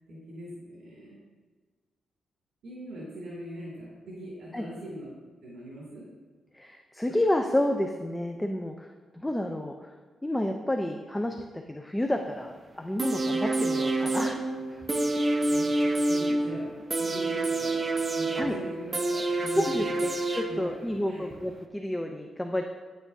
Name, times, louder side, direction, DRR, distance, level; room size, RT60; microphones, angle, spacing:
voice 1, 0.1-1.2 2.6-5.1 5.4-6.1 15.5-16.7 17.0-17.8 18.1-19.9 20.5-20.6 21.1-21.3, equal, 80° right, -5 dB, 2.4 m, -41 dB
voice 2, 6.5-9.9 10.2-11.4 11.7-14.4 14.7-14.8 18.4-18.6 19.5-22.6, left 1 dB, 10° left, 4 dB, 0.5 m, -30 dB
sound 1, 13.0-21.0 21.3-21.4, right 2 dB, 25° right, 0.7 m, -28 dB
9.9 x 8.3 x 2.7 m, 1.4 s
cardioid pair, 120°, 0 cm